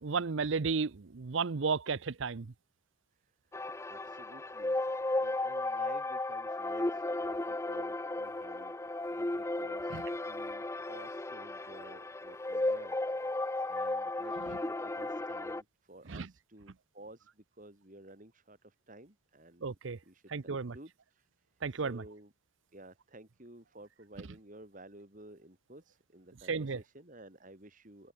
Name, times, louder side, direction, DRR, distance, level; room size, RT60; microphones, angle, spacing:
voice 1, 0.0-2.5 9.9-10.0 14.4-14.5 16.1-16.3 19.6-20.0 20.3-20.8 21.6-22.0 26.5-26.8, right 5 dB, 65° right, 0.7 m, -33 dB
voice 2, 3.2-4.7 5.2-13.0 13.4-19.7 20.1-22.3 22.7-28.1, right 1 dB, 40° right, 3.0 m, -54 dB
sound 1, 3.5-15.6, left 2 dB, 15° left, 0.5 m, -35 dB
head